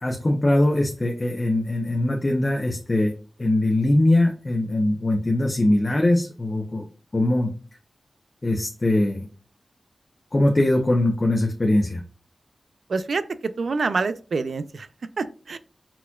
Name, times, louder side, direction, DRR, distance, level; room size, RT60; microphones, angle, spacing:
voice 1, 0.0-3.1 3.4-6.8 7.1-7.5 8.4-9.3 10.3-12.0, left 1 dB, 30° left, 0 dB, 0.7 m, -21 dB
voice 2, 12.9-13.2 13.6-14.9 15.2-15.6, right 4 dB, 80° right, 12 dB, 0.4 m, -26 dB
4.3 x 4.3 x 2.3 m, 0.38 s
wide cardioid pair, 105°, 0 cm